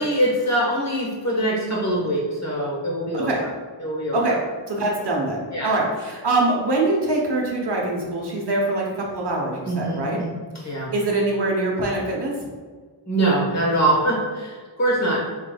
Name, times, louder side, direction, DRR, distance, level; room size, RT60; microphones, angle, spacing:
voice 1, 0.0-3.5 3.8-4.4 5.5-5.7 9.6-10.3 10.6-10.9 13.1-15.2, right 1 dB, 35° left, -3 dB, 1.2 m, -23 dB
voice 2, 3.1-3.4 4.1-4.4 4.7-10.2 10.9-12.4, right 2 dB, 55° right, -2 dB, 0.9 m, -23 dB
4.7 x 3.4 x 2.2 m, 1.5 s
wide cardioid pair, 115°, 48 cm